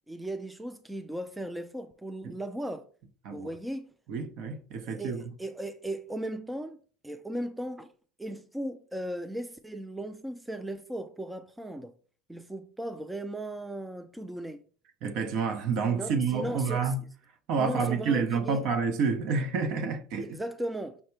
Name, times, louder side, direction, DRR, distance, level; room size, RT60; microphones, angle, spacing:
voice 1, 0.1-2.9 3.3-3.9 5.0-6.8 7.0-7.9 8.2-11.9 12.3-14.6 15.9-16.9 17.6-18.6 20.2-21.0, right 1 dB, 5° right, 0.3 m, -37 dB
voice 2, 4.1-5.2 15.0-17.0 17.5-20.4, right 5 dB, 60° right, 0.7 m, -29 dB
5.6 x 2.1 x 4.5 m
supercardioid pair, 115°, 0 cm